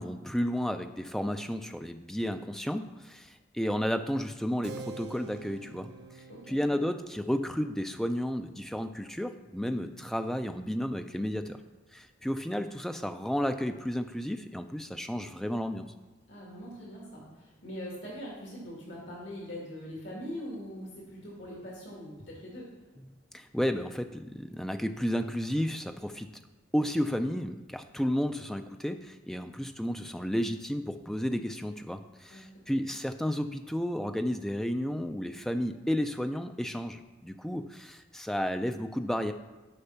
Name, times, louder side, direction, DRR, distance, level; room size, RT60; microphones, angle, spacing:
voice 1, 0.0-5.9 6.5-11.6 11.9-15.9 23.3-26.3 26.7-39.3, equal, ahead, 8 dB, 0.3 m, -32 dB
Keyboard (musical), 4.6-10.8, right 3 dB, 55° right, 0.5 m, -49 dB
voice 2, 6.3-6.8 16.3-22.7 32.3-32.4 32.7-32.8, equal, 80° left, -4 dB, 2.2 m, -42 dB
6.7 x 5.3 x 5.7 m, 1.2 s
head